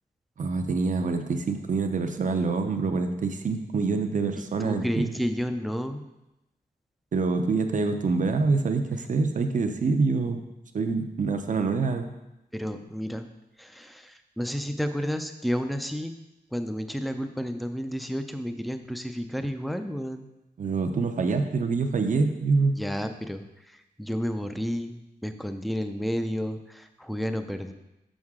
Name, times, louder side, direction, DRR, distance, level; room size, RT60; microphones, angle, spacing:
voice 1, 0.4-5.2 7.1-10.4 10.7-12.1 20.6-22.8, right 4 dB, 50° right, 6 dB, 0.6 m, -26 dB
voice 2, 4.6-6.0 12.5-13.3 13.6-16.1 16.5-20.3 22.8-27.7, equal, ahead, 8 dB, 0.4 m, -31 dB
6.4 x 6.3 x 3.6 m, 0.93 s
wide cardioid pair, 140°, 17 cm